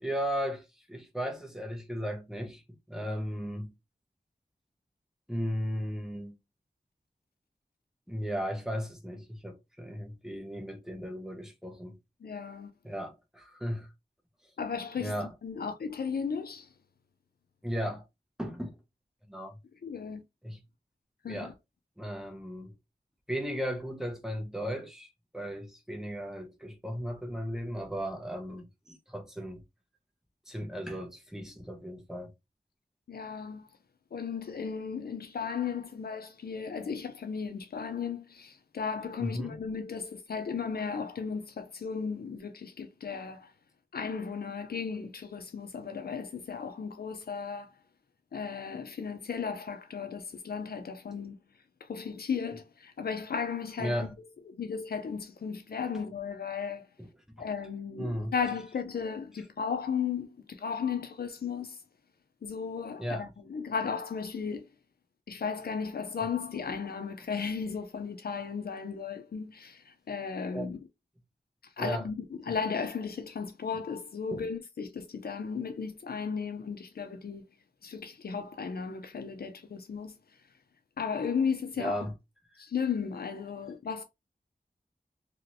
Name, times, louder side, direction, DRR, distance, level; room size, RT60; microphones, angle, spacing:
voice 1, 0.0-2.6 2.9-3.7 5.3-6.3 8.1-12.0 12.8-13.9 15.0-15.3 17.6-18.0 18.4-18.8 19.3-19.6 20.4-20.6 21.3-21.5 22.0-22.7 23.3-29.6 30.5-32.3 39.2-39.6 53.8-54.1 57.0-57.1 57.3-57.4 58.0-58.3 63.0-63.3 70.5-70.7 71.8-72.0 72.5-72.6 74.3-74.4 81.8-82.1 82.5-82.6, equal, 5° right, 0.8 m, -36 dB
voice 2, 12.2-12.7 14.6-16.7 19.8-20.2 21.2-21.5 33.1-33.7 34.1-43.5 43.9-47.7 48.3-51.4 51.8-54.1 54.5-56.9 57.4-61.8 62.4-64.7 65.3-70.8 71.8-77.5 77.8-80.2 81.0-81.9 82.6-84.0, left 6 dB, 75° left, 0.4 m, -35 dB
2.9 x 2.9 x 2.6 m
wide cardioid pair, 80°, 16 cm